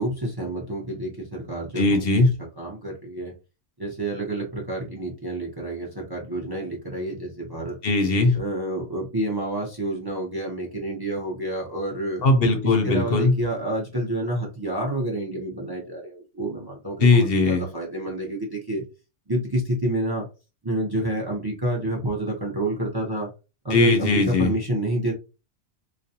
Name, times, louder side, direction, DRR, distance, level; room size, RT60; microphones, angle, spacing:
voice 1, 0.0-2.2 2.6-3.3 3.8-7.8 8.3-12.2 12.8-18.8 19.3-20.3 20.6-23.3 23.6-25.1, right 1 dB, 30° right, -2 dB, 0.5 m, -28 dB
voice 2, 1.8-2.3 7.8-8.4 12.2-13.3 17.0-17.6 23.7-24.5, left 3 dB, 65° left, 5 dB, 0.7 m, -19 dB
2.4 x 2.1 x 2.7 m, 0.30 s
omnidirectional pair, 1.2 m